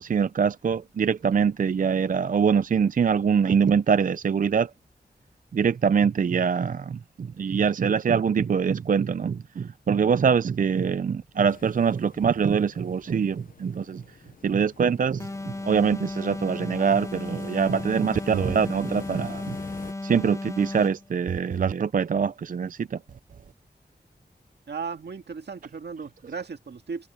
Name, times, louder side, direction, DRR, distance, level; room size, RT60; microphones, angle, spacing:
voice 1, 0.0-4.7 5.5-14.2 14.4-19.6 20.0-23.0, right 6 dB, 50° right, 0.4 m, -24 dB
sound 1, 11.5-19.9, left 5 dB, 55° left, 0.7 m, -46 dB
sound 2, 15.2-21.1, left 2 dB, 15° left, 0.6 m, -35 dB
voice 2, 24.7-27.1, right 5 dB, 80° right, 1.8 m, -36 dB
wide cardioid pair, 105°, 17 cm